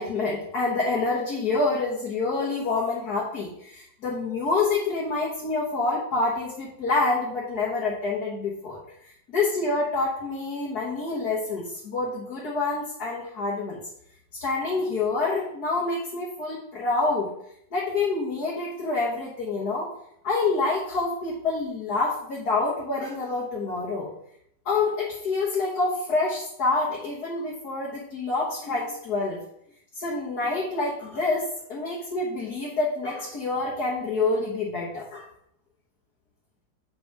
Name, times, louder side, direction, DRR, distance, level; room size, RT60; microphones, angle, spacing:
voice 1, 0.0-8.8 9.3-13.8 14.4-17.3 17.7-19.9 20.2-24.1 24.7-29.4 30.0-35.3, left 3 dB, 60° left, -5 dB, 2.0 m, -27 dB
8.4 x 4.2 x 4.7 m, 0.73 s
omnidirectional pair, 1.9 m